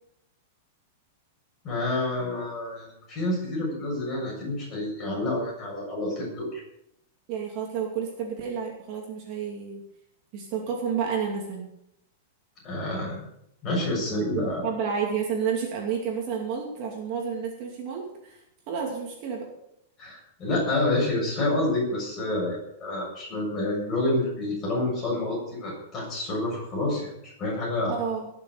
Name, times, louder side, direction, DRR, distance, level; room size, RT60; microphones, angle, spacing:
voice 1, 1.6-6.6 12.6-13.2 13.6-14.7 20.0-27.9, left 2 dB, 20° left, -3 dB, 7.0 m, -28 dB
voice 2, 7.3-9.8 10.3-11.7 14.1-19.5 27.9-28.3, right 6 dB, 35° right, 0 dB, 2.7 m, -30 dB
19.0 x 7.0 x 6.9 m, 0.80 s
supercardioid pair, 170°, 0 cm